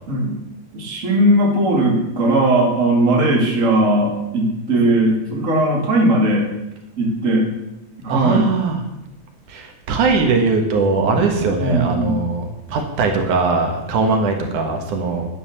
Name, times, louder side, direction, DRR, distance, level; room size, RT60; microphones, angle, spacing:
voice 1, 0.7-6.5 7.0-7.5 8.0-8.5 11.6-12.2, right 1 dB, 25° right, 0 dB, 2.4 m, -18 dB
voice 2, 8.1-8.8 9.5-12.4 12.7-15.3, right 4 dB, 75° right, 4 dB, 2.9 m, -20 dB
10.5 x 9.3 x 7.1 m, 0.93 s
omnidirectional pair, 3.6 m